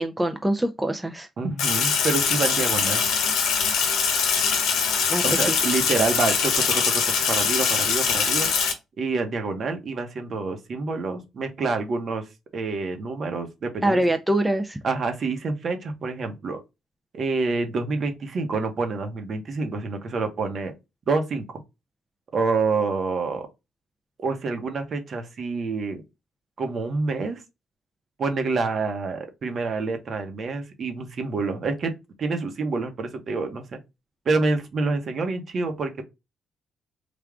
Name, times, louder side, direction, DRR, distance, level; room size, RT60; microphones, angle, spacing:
voice 1, 0.0-1.3 5.1-5.6 13.8-14.8, right 1 dB, 10° right, 0.4 m, -24 dB
voice 2, 1.4-3.0 5.2-8.5 9.0-12.3 12.5-14.0 14.8-16.6 17.1-20.7 21.1-21.4 22.3-23.5 24.2-26.0 26.6-27.4 28.2-31.9 32.2-33.6 34.2-36.0, right 4 dB, 50° right, 1.0 m, -27 dB
Sink (filling or washing), 1.6-8.7, left 6 dB, 90° left, 0.9 m, -23 dB
3.5 x 2.4 x 3.5 m
cardioid pair, 90°, 0 cm